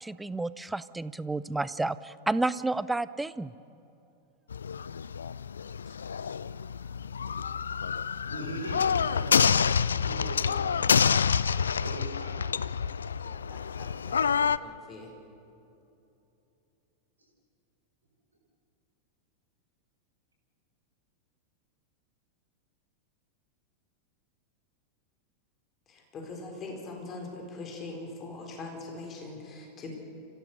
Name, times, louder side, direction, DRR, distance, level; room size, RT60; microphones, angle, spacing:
voice 1, 0.0-3.5, right 2 dB, 5° right, 17 dB, 0.6 m, -31 dB
sound 1, 4.5-14.6, left 6 dB, 70° left, 0.4 m, -28 dB
voice 2, 8.3-9.4 10.0-10.8 11.8-12.3, right 2 dB, 75° right, -1 dB, 4.2 m, -40 dB
voice 3, 13.2-15.1 25.9-30.0, left 3 dB, 30° left, 2 dB, 4.5 m, -42 dB
29.0 x 16.0 x 6.7 m, 2.9 s
figure-of-eight pair, 90°, 0 cm